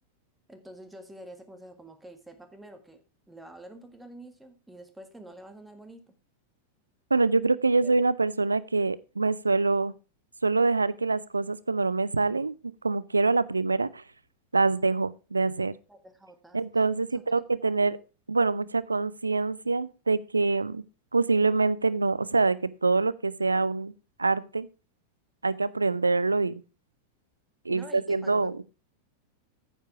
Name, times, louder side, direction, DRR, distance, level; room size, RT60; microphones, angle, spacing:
voice 1, 0.5-3.0 3.3-6.1 7.8-7.9 15.9-16.6 27.7-28.6, right 1 dB, 5° right, 1.7 m, -47 dB
voice 2, 7.1-9.9 10.4-12.6 12.8-14.0 14.5-15.7 16.5-18.0 18.3-20.8 21.1-23.9 24.2-24.7 25.4-26.6 27.7-28.6, right 3 dB, 80° right, 0.4 m, -25 dB
9.3 x 7.4 x 4.6 m
figure-of-eight pair, 90°, 0 cm